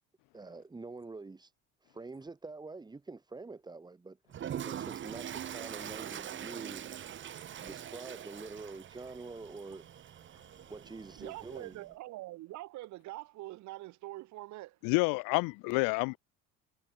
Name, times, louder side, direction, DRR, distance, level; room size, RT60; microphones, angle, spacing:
voice 1, 0.3-1.5 1.8-10.4 10.7-11.9, right 3 dB, 10° right, 2.0 m, -47 dB
Toilet flush, 4.3-11.8, right 10 dB, 35° right, 1.5 m, -43 dB
voice 2, 11.2-14.8, right 18 dB, 60° right, 1.0 m, -44 dB
voice 3, 14.8-16.2, left 30 dB, 75° left, 0.5 m, -29 dB
cardioid pair, 140°, 33 cm